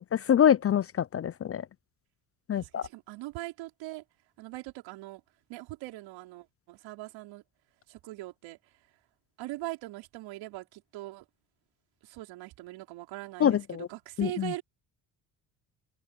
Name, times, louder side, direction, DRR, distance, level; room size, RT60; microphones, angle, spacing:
voice 1, 0.0-1.6 2.5-2.8 13.4-13.9 14.2-14.5, left 9 dB, 35° left, 0.4 m, -25 dB
voice 2, 2.5-4.0 4.4-5.2 5.5-7.4 7.9-8.8 9.4-11.3 12.0-14.6, right 18 dB, 85° right, 5.3 m, -41 dB
supercardioid pair, 70°, 44 cm